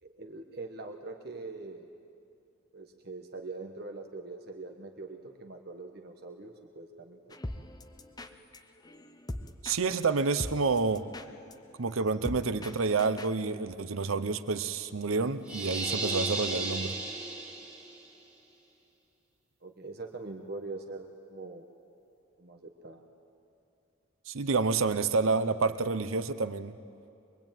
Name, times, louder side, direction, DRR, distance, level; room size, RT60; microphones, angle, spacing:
voice 1, 0.0-1.9 2.7-7.2 19.6-21.6 22.4-23.1, right 3 dB, 50° right, 4 dB, 1.3 m, -43 dB
sound 1, 7.3-13.4, left 1 dB, 20° left, 0.8 m, -43 dB
voice 2, 9.6-11.1 11.8-17.0 24.3-26.8, right 4 dB, 80° right, 12 dB, 0.8 m, -29 dB
sound 2, 15.5-18.0, right 2 dB, 5° right, 3.0 m, -34 dB
23.5 x 22.5 x 9.1 m, 2.5 s
head